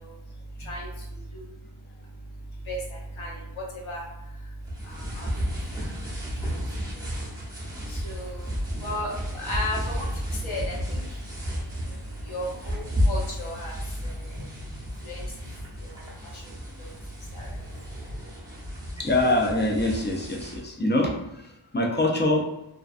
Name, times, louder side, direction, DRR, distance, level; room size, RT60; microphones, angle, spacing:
voice 1, 3.6-4.0 4.9-5.3 7.9-8.4 8.8-10.1 10.4-11.0 12.3-13.7 15.0-15.2 16.8-16.9 17.3-17.5, left 1 dB, 70° left, -4 dB, 0.9 m, -33 dB
sound 1, 4.6-20.6, equal, 10° right, 0.7 m, -33 dB
voice 2, 19.0-22.5, left 1 dB, 25° left, 0 dB, 0.4 m, -25 dB
2.4 x 2.2 x 2.4 m, 0.86 s
wide cardioid pair, 75°, 49 cm